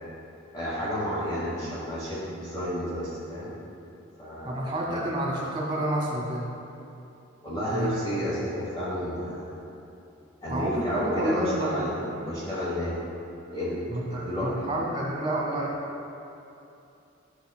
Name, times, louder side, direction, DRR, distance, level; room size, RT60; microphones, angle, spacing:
voice 1, 0.5-3.5 4.2-5.0 7.4-9.7 10.4-12.9 13.5-13.8 14.1-14.8, equal, 20° left, -9 dB, 1.3 m, -31 dB
voice 2, 4.4-6.5 7.7-7.9 8.3-8.4 10.5-11.8 12.2-12.3 13.9-15.8, right 1 dB, 25° right, -3 dB, 1.7 m, -29 dB
11.5 x 6.4 x 2.3 m, 2.8 s
head